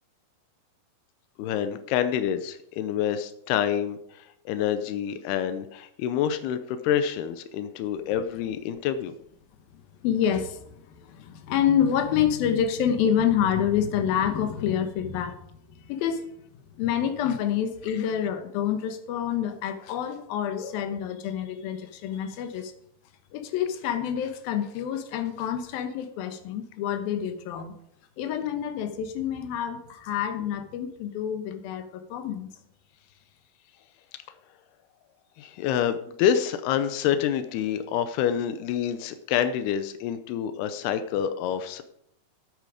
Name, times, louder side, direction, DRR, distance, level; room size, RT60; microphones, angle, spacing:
voice 1, 1.4-9.1 17.9-18.0 35.4-41.8, left 9 dB, 90° left, 10 dB, 2.8 m, -27 dB
voice 2, 10.0-15.4 15.9-16.2 16.8-22.7 23.3-27.7 28.2-32.5, left 9 dB, 75° left, 8 dB, 2.9 m, -27 dB
16.0 x 8.4 x 5.0 m, 0.72 s
omnidirectional pair, 4.5 m